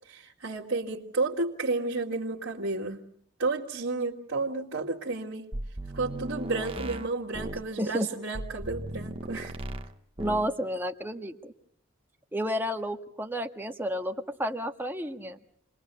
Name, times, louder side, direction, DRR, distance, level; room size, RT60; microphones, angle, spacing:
voice 1, 0.1-3.0 3.4-5.5 5.9-9.6, right 3 dB, 65° right, -5 dB, 2.3 m, -31 dB
sound 1, 5.5-7.7 8.3-9.9 10.2-10.5, right 1 dB, 25° right, 1.2 m, -37 dB
voice 2, 7.8-8.1 10.2-11.5 12.3-15.4, equal, 10° right, 4 dB, 1.6 m, -31 dB
29.0 x 21.0 x 7.0 m, 0.64 s
head